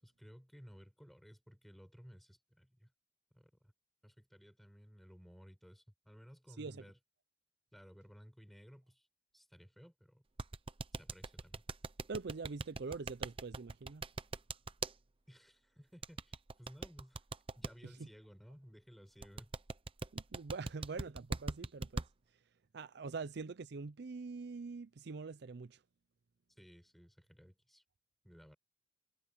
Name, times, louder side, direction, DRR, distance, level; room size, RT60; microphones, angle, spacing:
voice 1, 0.0-2.9 3.3-3.7 4.0-7.0 7.7-9.1 9.3-10.2 10.9-11.6 15.3-17.2 17.6-19.5 26.6-27.8 28.2-28.6, equal, ahead, 7.7 m, -58 dB
sound 1, 10.4-14.9 16.0-17.7 19.2-22.1, right 3 dB, 30° right, 0.8 m, -40 dB
voice 2, 12.1-14.0 17.8-18.1 20.1-22.0 22.7-25.8, right 4 dB, 65° right, 0.5 m, -44 dB
head